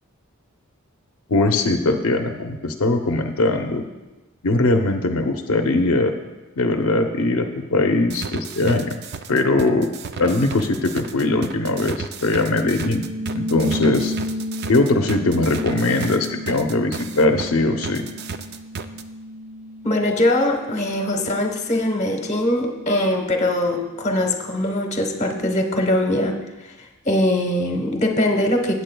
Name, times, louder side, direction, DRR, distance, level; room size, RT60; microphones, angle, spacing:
voice 1, 1.3-3.8 4.4-6.1 6.6-9.0 9.3-9.9 10.2-13.0 13.3-14.1 14.7-18.0, left 2 dB, 75° left, 4 dB, 0.7 m, -20 dB
sound 1, 8.1-17.5 17.8-19.0, right 5 dB, 50° right, 0.4 m, -33 dB
sound 2, 12.9-23.8, left 1 dB, 10° right, 1.7 m, -33 dB
voice 2, 19.8-26.4 26.6-28.8, left 1 dB, 30° left, 3 dB, 1.0 m, -22 dB
15.5 x 8.4 x 2.2 m, 1.1 s
head